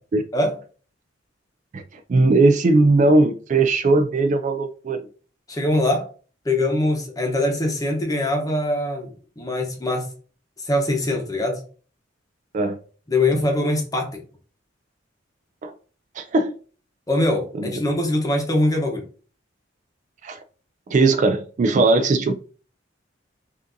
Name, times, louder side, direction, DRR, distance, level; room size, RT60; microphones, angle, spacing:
voice 1, 2.1-5.1 12.5-12.8 15.6-15.7 16.2-16.5 17.6-17.7 20.2-20.4 20.9-22.3, right 3 dB, 40° right, 0.3 m, -18 dB
voice 2, 5.5-6.1 6.4-10.1 10.6-11.6 13.1-14.2 17.1-19.0, left 1 dB, 20° left, 0.9 m, -22 dB
5.8 x 2.6 x 2.6 m
head